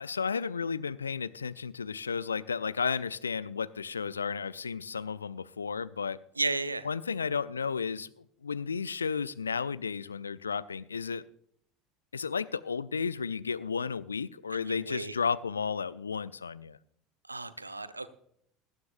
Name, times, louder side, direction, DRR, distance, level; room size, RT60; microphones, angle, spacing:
voice 1, 0.0-6.2 6.8-8.1 8.4-11.2 12.1-16.8, left 5 dB, 80° left, 17 dB, 0.4 m, -33 dB
voice 2, 6.4-6.9 14.5-15.2 17.3-18.1, right 2 dB, 85° right, 14 dB, 0.7 m, -34 dB
18.5 x 12.5 x 2.5 m, 0.68 s
figure-of-eight pair, 70°, 0 cm